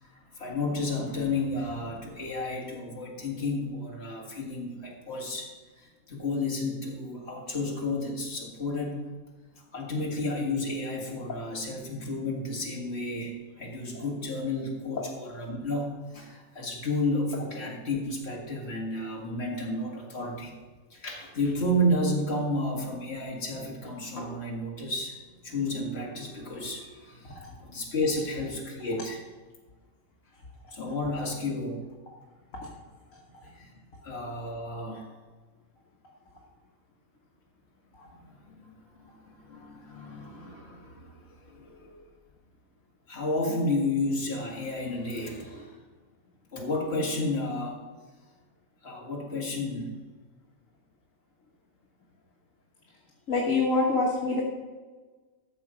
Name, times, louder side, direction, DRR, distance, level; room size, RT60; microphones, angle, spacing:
voice 1, 0.0-5.5 5.8-9.0 9.7-20.5 20.9-29.2 30.7-31.8 33.4-33.7 34.0-35.1 38.1-42.1 43.1-45.8 46.5-47.8 48.8-50.0, left 1 dB, 50° left, -2 dB, 2.3 m, -32 dB
voice 2, 53.3-54.4, left 3 dB, 80° left, -2 dB, 1.8 m, -25 dB
13.0 x 7.2 x 5.1 m, 1.3 s
omnidirectional pair, 1.4 m